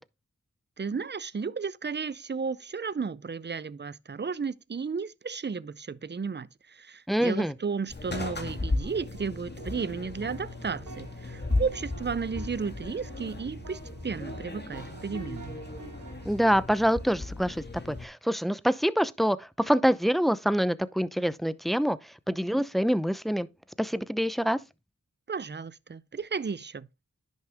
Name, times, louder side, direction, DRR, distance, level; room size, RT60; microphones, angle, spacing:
voice 1, 0.8-15.6 25.3-26.9, right 5 dB, 35° right, 0.6 m, -34 dB
voice 2, 7.1-7.5 16.2-22.0 22.3-23.5 23.8-24.6, equal, ahead, 0.7 m, -26 dB
sound 1, 7.9-18.1, left 2 dB, 35° left, 2.0 m, -36 dB
sound 2, 9.1-16.6, right 4 dB, 75° right, 1.4 m, -48 dB
10.5 x 6.5 x 3.5 m
wide cardioid pair, 40°, 30 cm